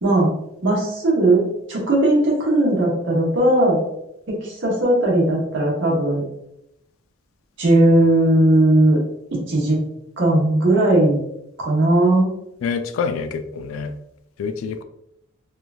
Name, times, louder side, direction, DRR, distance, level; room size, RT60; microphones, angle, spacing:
voice 1, 0.6-1.4 1.7-3.8 4.3-6.2 7.6-9.0 9.3-9.8 10.2-11.2 11.6-12.3, right 1 dB, 60° right, -4 dB, 1.0 m, -17 dB
voice 2, 12.6-13.9 14.4-14.8, left 5 dB, 75° left, 9 dB, 0.3 m, -26 dB
3.1 x 2.3 x 2.3 m, 0.79 s
head